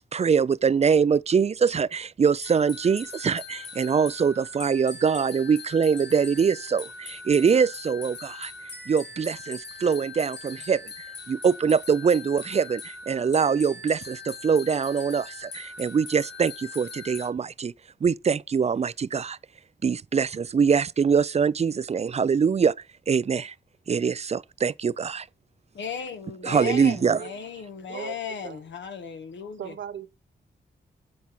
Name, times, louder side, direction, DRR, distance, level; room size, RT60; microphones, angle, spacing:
voice 1, 0.0-8.5 8.9-17.7 18.0-19.4 19.8-22.8 23.1-23.5 23.9-25.3 26.4-27.2, right 6 dB, 35° right, 0.4 m, -23 dB
sound 1, 2.4-17.3, left 4 dB, 65° left, 1.7 m, -41 dB
voice 2, 25.7-29.7, left 6 dB, 80° left, 1.3 m, -36 dB
voice 3, 26.5-27.3 27.8-28.6 29.6-30.2, right 8 dB, 85° right, 0.9 m, -38 dB
9.4 x 4.5 x 5.6 m
cardioid pair, 60°, 19 cm